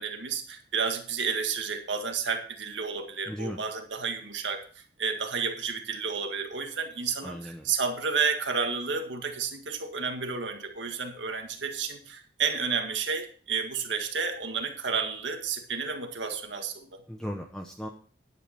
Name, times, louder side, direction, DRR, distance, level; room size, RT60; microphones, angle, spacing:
voice 1, 0.0-17.0, right 5 dB, 85° right, 5 dB, 1.8 m, -31 dB
voice 2, 3.3-3.6 7.2-7.7 17.1-17.9, equal, 5° left, 1 dB, 0.8 m, -36 dB
10.5 x 8.8 x 4.4 m, 0.43 s
head